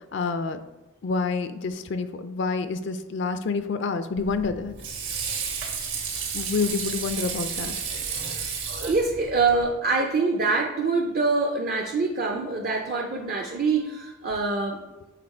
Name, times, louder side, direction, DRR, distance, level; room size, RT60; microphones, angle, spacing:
voice 1, 0.1-0.6 1.0-4.7 6.3-7.7, left 4 dB, 60° left, 10 dB, 0.4 m, -28 dB
Water / Sink (filling or washing), 4.2-9.6, right 6 dB, 70° right, 1.4 m, -32 dB
voice 2, 8.8-14.8, right 3 dB, 45° right, 2 dB, 0.5 m, -25 dB
6.7 x 3.9 x 4.3 m, 1.1 s
head